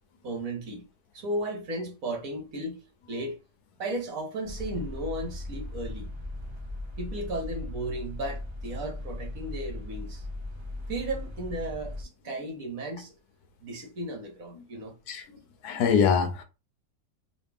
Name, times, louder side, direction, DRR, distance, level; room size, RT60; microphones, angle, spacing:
voice 1, 0.2-0.8 1.1-2.8 3.1-3.4 3.8-6.1 7.0-10.2 10.9-13.1 13.6-14.9, right 1 dB, 65° right, 1.6 m, -35 dB
sound 1, 4.4-12.0, left 1 dB, 25° right, 0.6 m, -38 dB
voice 2, 15.6-16.4, left 6 dB, 90° left, 1.3 m, -23 dB
4.0 x 2.4 x 3.4 m
omnidirectional pair, 1.6 m